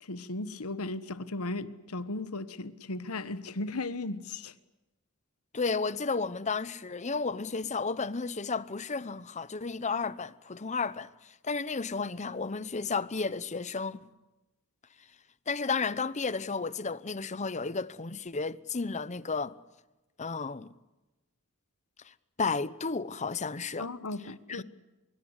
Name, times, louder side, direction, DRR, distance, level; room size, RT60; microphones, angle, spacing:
voice 1, 0.0-4.5 23.8-24.6, left 2 dB, 85° left, 1.3 m, -36 dB
voice 2, 5.5-14.1 15.5-19.6 20.2-20.7 22.0-23.9 24.5-24.6, left 4 dB, 35° left, 0.9 m, -33 dB
25.5 x 22.5 x 8.2 m
head